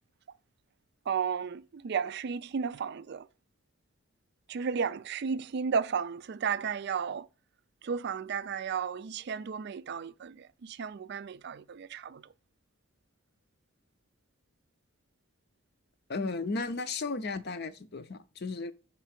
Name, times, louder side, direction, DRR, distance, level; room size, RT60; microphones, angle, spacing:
voice 1, 1.1-3.3 4.5-7.3 7.8-12.2, right 6 dB, 50° right, 0.3 m, -33 dB
voice 2, 16.1-18.7, left 3 dB, 50° left, 0.6 m, -34 dB
5.6 x 4.5 x 5.8 m
head